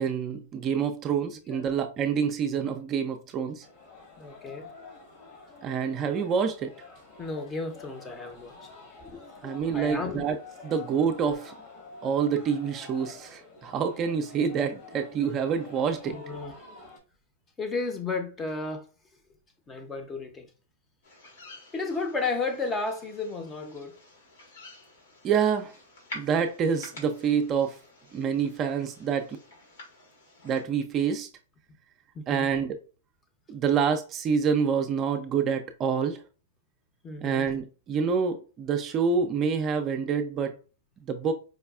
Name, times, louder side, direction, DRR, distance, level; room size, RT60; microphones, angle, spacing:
voice 1, 0.0-3.7 5.6-6.7 9.4-10.4 10.6-11.5 12.0-16.1 25.2-25.7 26.1-27.8 28.1-29.4 30.4-31.3 32.3-32.8 33.5-36.2 37.2-40.5 41.1-41.3, right 6 dB, 30° right, 0.4 m, -27 dB
sound 1, 3.6-17.0, left 3 dB, 50° left, 1.1 m, -48 dB
voice 2, 4.2-4.7 7.2-8.7 9.0-10.2 16.1-16.5 17.6-18.8 19.7-20.5 21.7-24.0 32.1-32.5 37.0-37.4, left 3 dB, 20° left, 0.6 m, -33 dB
Barn Owl Calls in UK, 21.0-30.6, left 2 dB, 75° left, 1.5 m, -49 dB
4.7 x 2.2 x 2.3 m
hypercardioid pair, 125°, 0 cm